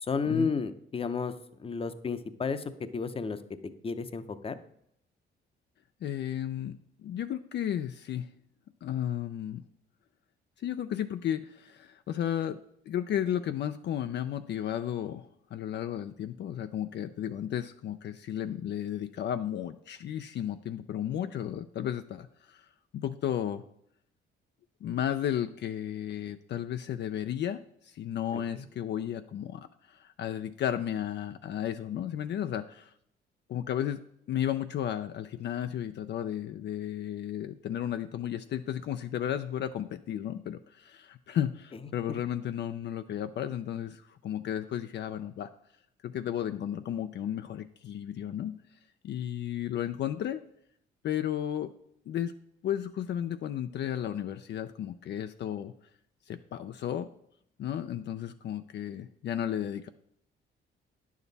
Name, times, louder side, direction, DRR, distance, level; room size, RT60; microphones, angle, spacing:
voice 1, 0.0-1.3 1.6-2.6 2.9-3.4 3.8-4.6 28.6-28.7, left 5 dB, 30° left, 11 dB, 0.7 m, -32 dB
voice 2, 6.0-8.3 8.8-9.6 10.6-12.6 12.9-22.7 22.9-23.6 24.8-32.9 33.5-34.0 34.3-45.5 46.0-48.6 49.0-50.4 51.0-51.7 52.1-52.3 52.6-55.7 56.3-57.1 57.6-59.9, left 10 dB, 60° left, 9 dB, 0.5 m, -33 dB
9.9 x 7.2 x 4.0 m, 0.72 s
cardioid pair, 90°, 20 cm